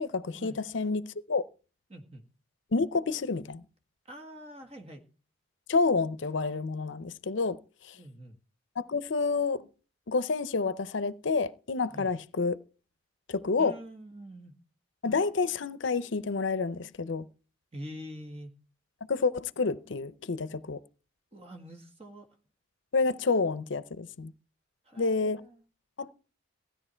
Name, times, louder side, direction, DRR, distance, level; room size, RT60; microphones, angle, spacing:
voice 1, 0.0-1.4 2.7-3.6 5.7-7.6 7.8-8.0 8.8-9.6 10.1-12.6 13.3-13.7 15.0-17.3 19.1-20.8 22.9-24.3 25.0-25.4 26.0-26.1, left 4 dB, 70° left, 0.6 m, -29 dB
voice 2, 1.9-2.2 4.1-5.0 7.9-8.4 11.9-12.1 13.6-14.5 17.7-18.5 21.3-22.3 24.9-25.6, equal, 30° right, 1.8 m, -45 dB
16.0 x 10.5 x 4.4 m
head